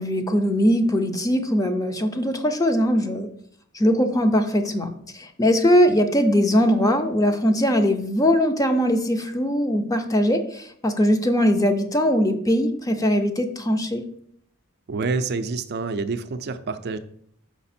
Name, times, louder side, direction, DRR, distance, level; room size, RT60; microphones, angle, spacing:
voice 1, 0.0-3.3 3.7-14.0, equal, 15° left, 6 dB, 0.6 m, -21 dB
voice 2, 14.9-17.0, right 4 dB, 50° right, 10 dB, 0.4 m, -27 dB
5.9 x 4.9 x 4.3 m, 0.64 s
head